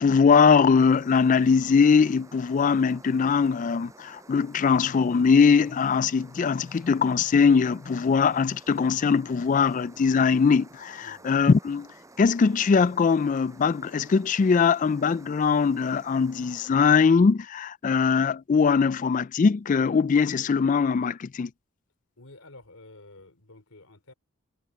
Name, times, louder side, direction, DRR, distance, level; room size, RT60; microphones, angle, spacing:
voice 1, 0.0-11.9 12.2-21.5, left 5 dB, 35° left, 0.3 m, -21 dB
sound 1, 0.8-16.7, right 2 dB, 15° right, 5.9 m, -52 dB
voice 2, 22.2-24.1, left 2 dB, 80° left, 3.6 m, -50 dB
head